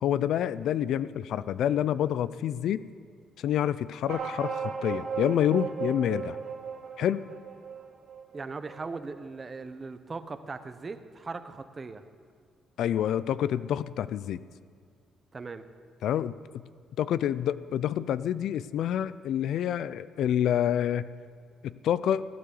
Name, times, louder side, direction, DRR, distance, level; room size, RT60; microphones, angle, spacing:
voice 1, 0.0-2.8 3.4-6.4 7.0-7.2 12.8-14.4 16.0-16.3 17.0-21.1 21.6-22.2, left 10 dB, 75° left, 16 dB, 0.4 m, -27 dB
sound 1, 4.1-9.0, right 6 dB, 85° right, 2.5 m, -36 dB
voice 2, 8.3-12.0 15.3-15.6, right 4 dB, 30° right, 11 dB, 1.0 m, -39 dB
15.0 x 9.5 x 7.8 m, 2.1 s
cardioid pair, 90°, 0 cm